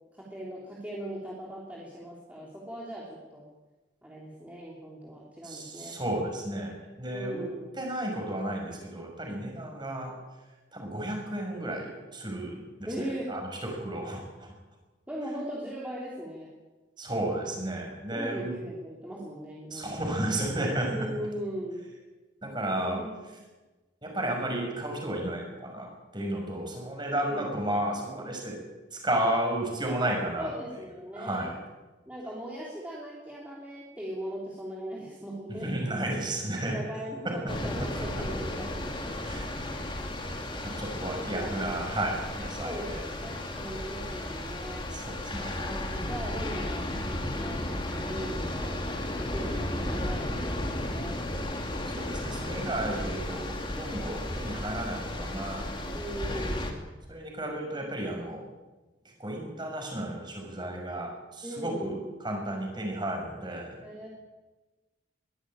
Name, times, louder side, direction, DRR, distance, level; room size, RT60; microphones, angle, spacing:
voice 1, 0.1-3.4 4.0-6.0 7.1-7.7 12.9-13.4 15.1-16.5 18.1-20.0 20.8-21.9 22.7-23.1 27.2-27.5 30.4-31.5 32.1-35.8 36.7-39.2 41.2-41.8 42.6-44.9 45.5-48.8 49.3-51.2 55.9-56.8 61.4-62.1 63.8-64.1, equal, 10° right, -5 dB, 3.5 m, -39 dB
voice 2, 5.4-7.5 7.7-10.1 10.7-14.5 17.0-18.5 19.7-21.1 22.4-23.0 24.0-28.6 28.9-30.5 31.1-31.5 35.6-36.8 37.2-37.4 39.2-39.9 40.6-43.0 44.9-45.6 51.9-55.9 56.3-56.5 57.1-58.4 59.0-63.8, right 1 dB, 25° right, 1 dB, 6.1 m, -33 dB
sound 1, 37.5-56.7, left 1 dB, 25° left, 2.7 m, -34 dB
22.0 x 15.5 x 9.0 m, 1.2 s
head